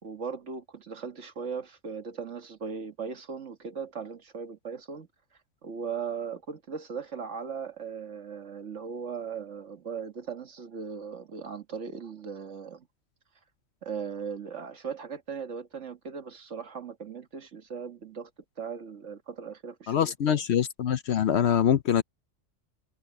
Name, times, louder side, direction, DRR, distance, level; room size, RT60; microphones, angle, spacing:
voice 1, 0.0-5.1 5.6-12.9 13.8-18.3 18.6-20.4, right 6 dB, 65° right, 1.9 m, -38 dB
voice 2, 19.9-22.0, left 9 dB, 60° left, 0.9 m, -24 dB
omnidirectional pair, 1.4 m